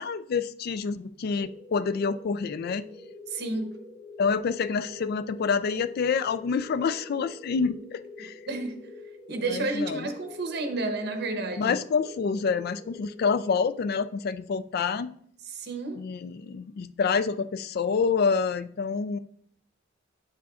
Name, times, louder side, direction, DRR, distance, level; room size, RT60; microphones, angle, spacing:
voice 1, 0.0-2.9 4.2-8.4 9.5-10.1 11.6-15.1 16.0-19.2, left 5 dB, 55° left, 0.3 m, -27 dB
sound 1, 1.4-14.5, left 3 dB, 20° left, 1.6 m, -46 dB
voice 2, 3.3-3.8 8.5-8.8 9.3-11.8 15.5-16.0, right 2 dB, 60° right, 0.8 m, -31 dB
8.0 x 7.4 x 2.4 m
head